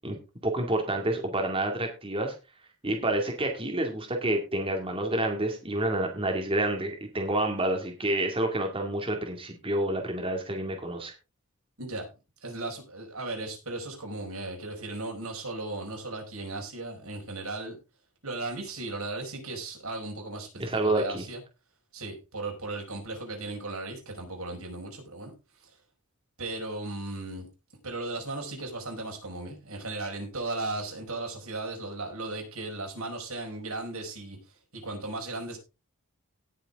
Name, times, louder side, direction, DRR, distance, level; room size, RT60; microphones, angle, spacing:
voice 1, 0.4-2.3 2.8-11.1 20.6-21.2, right 1 dB, 25° right, 2.2 m, -28 dB
voice 2, 12.4-17.8 18.2-21.4 21.9-25.3 25.6-25.7 26.4-27.5 27.8-34.4 34.7-35.6, right 2 dB, 80° right, 5.2 m, -36 dB
18.0 x 6.9 x 3.6 m
head